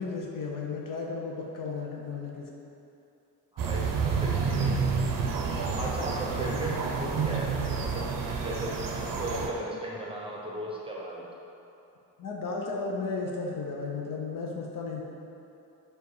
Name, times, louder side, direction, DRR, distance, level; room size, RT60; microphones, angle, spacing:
voice 1, 0.0-2.5 12.2-15.0, left 4 dB, 50° left, -1 dB, 0.7 m, -34 dB
voice 2, 3.5-4.8 5.3-7.5 7.8-11.2, right 1 dB, 10° right, -4 dB, 0.9 m, -36 dB
sound 1, 3.6-9.5, right 5 dB, 50° right, 0.7 m, -29 dB
4.5 x 2.5 x 4.7 m, 2.8 s
supercardioid pair, 55°, 43 cm